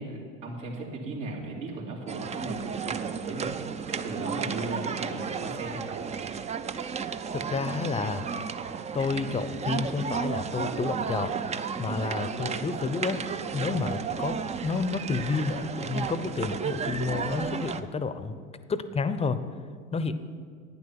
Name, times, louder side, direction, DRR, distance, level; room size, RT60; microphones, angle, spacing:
voice 1, 0.0-3.6 3.8-6.0 11.9-12.0 13.8-14.0, right 2 dB, 75° right, -3 dB, 2.9 m, -37 dB
sound 1, 2.1-17.8, right 6 dB, 20° right, 0.5 m, -33 dB
voice 2, 7.3-8.3 8.9-11.4 11.8-13.2 13.5-18.4 18.7-19.4 19.9-20.1, left 4 dB, 15° left, 12 dB, 0.7 m, -30 dB
11.0 x 9.5 x 5.9 m, 2.1 s
hypercardioid pair, 75°, 39 cm